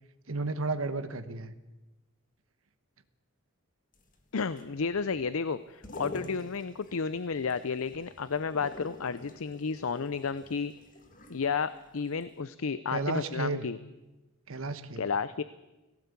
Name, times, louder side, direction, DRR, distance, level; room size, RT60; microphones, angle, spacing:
voice 1, 0.3-1.5 12.9-13.6 14.5-15.0, right 3 dB, 75° right, 10 dB, 1.1 m, -32 dB
sound 1, 3.9-11.9 12.2-12.3, left 2 dB, 40° left, 2.2 m, -48 dB
voice 2, 4.3-10.7 11.3-13.8 15.0-15.4, left 5 dB, 75° left, 15 dB, 0.6 m, -32 dB
18.5 x 17.0 x 8.4 m, 1.1 s
head